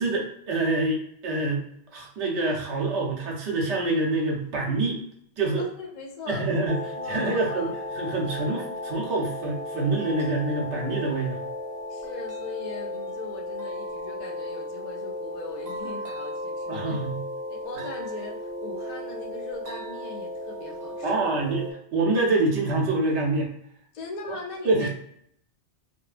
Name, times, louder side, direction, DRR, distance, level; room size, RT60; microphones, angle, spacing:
voice 1, 0.0-1.6 1.9-5.0 5.4-5.6 6.3-6.8 7.1-11.4 16.7-17.2 21.0-21.6 21.9-23.5 24.6-24.9, right 2 dB, 70° right, -1 dB, 1.0 m, -26 dB
voice 2, 5.6-7.7 11.9-17.0 17.5-21.4 23.9-24.9, left 3 dB, 55° left, 0 dB, 0.5 m, -40 dB
sound 1, 6.7-21.7, left 1 dB, 50° right, 0.6 m, -35 dB
2.9 x 2.1 x 2.4 m, 0.69 s
omnidirectional pair, 1.2 m